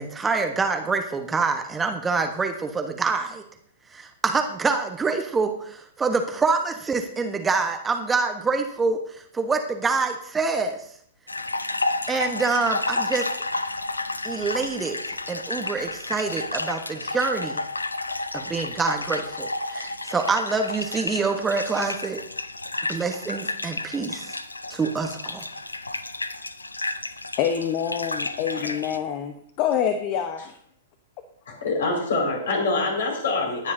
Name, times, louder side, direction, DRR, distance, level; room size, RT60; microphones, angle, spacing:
voice 1, 0.0-3.4 3.9-10.8 12.1-13.3 14.2-15.0 15.3-17.6 18.3-22.2 22.9-24.4 24.7-25.4, right 4 dB, 15° right, 5 dB, 1.1 m, -26 dB
sound 1, 11.3-29.0, left 2 dB, 85° left, 0.6 m, -31 dB
voice 2, 27.4-30.5, left 8 dB, 40° left, 8 dB, 1.0 m, -26 dB
voice 3, 31.5-33.7, left 3 dB, 65° left, 0 dB, 5.1 m, -25 dB
19.0 x 9.7 x 2.8 m, 0.65 s
figure-of-eight pair, 110°, 0 cm